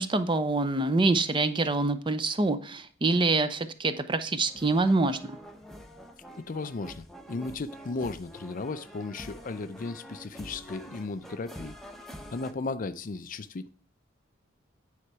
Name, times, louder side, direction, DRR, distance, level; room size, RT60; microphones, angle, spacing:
voice 1, 0.0-5.2, right 3 dB, 25° right, 0.6 m, -25 dB
sound 1, 4.5-12.5, equal, ahead, 0.8 m, -46 dB
voice 2, 6.4-11.8 12.3-13.7, left 3 dB, 45° left, 0.5 m, -35 dB
9.5 x 4.3 x 4.7 m
head